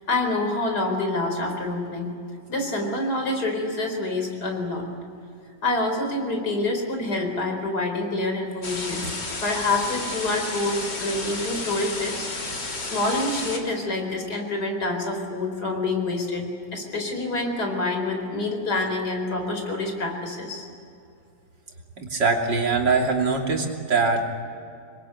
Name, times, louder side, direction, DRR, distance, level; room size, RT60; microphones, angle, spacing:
voice 1, 0.1-2.1 2.5-4.9 5.6-9.1 9.4-20.7, left 2 dB, 65° left, 3 dB, 5.0 m, -27 dB
sound 1, 8.6-13.6, left 3 dB, 80° left, 3.9 m, -32 dB
voice 2, 22.1-24.3, right 4 dB, 85° right, 1 dB, 3.7 m, -22 dB
26.5 x 22.0 x 8.7 m, 2.5 s
omnidirectional pair, 1.9 m